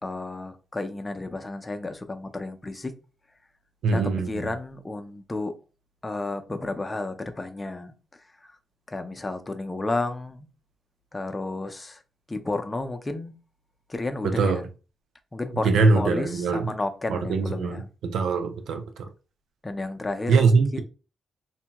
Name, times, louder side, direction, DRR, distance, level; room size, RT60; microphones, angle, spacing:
voice 1, 0.0-2.9 3.9-5.5 6.0-8.5 8.9-10.5 11.1-12.0 12.3-13.3 13.9-14.7 15.3-17.9 19.6-20.8, left 2 dB, 25° left, 0.5 m, -32 dB
voice 2, 3.8-4.3 14.2-14.6 15.6-16.7 17.1-17.8 18.0-18.8 20.3-20.8, right 4 dB, 80° right, 0.4 m, -22 dB
2.6 x 2.1 x 2.9 m
cardioid pair, 65°, 0 cm